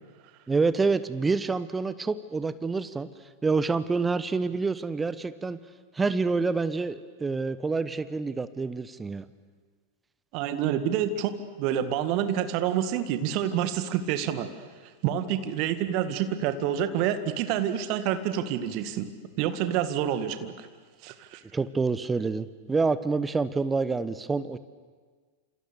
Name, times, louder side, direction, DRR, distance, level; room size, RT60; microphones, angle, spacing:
voice 1, 0.5-3.1 3.4-5.6 5.9-9.2 21.5-24.6, right 4 dB, 15° right, 15 dB, 1.1 m, -27 dB
voice 2, 10.3-11.3 11.6-14.5 15.0-19.1 19.4-20.7 21.0-21.4, right 10 dB, 45° right, 9 dB, 1.9 m, -28 dB
28.5 x 27.5 x 6.9 m, 1.5 s
figure-of-eight pair, 90°, 0 cm